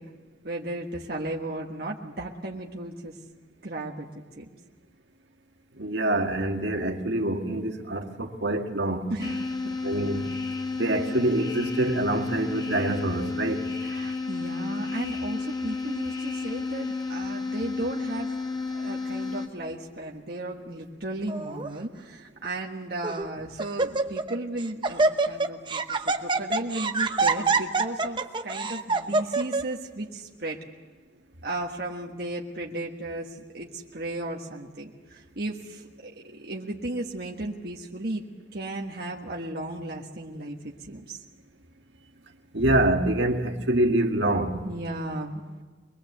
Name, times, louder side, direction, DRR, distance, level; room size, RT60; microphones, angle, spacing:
voice 1, 0.4-3.2 3.6-4.1 4.4-4.5 9.1-9.8 13.8-18.4 18.7-30.6 31.4-38.2 38.5-41.2 44.6-45.4, right 2 dB, 55° right, 1.5 m, -35 dB
voice 2, 5.8-9.1 9.8-10.3 10.7-13.7 42.5-44.6, right 1 dB, 70° right, 1.8 m, -25 dB
sound 1, 9.2-19.5, left 4 dB, 20° left, 1.5 m, -32 dB
Laughter, 21.3-21.7 22.4-22.5 23.0-23.3 23.6-24.3 24.6-29.6, right 3 dB, 25° right, 0.9 m, -25 dB
23.5 x 21.0 x 8.0 m
head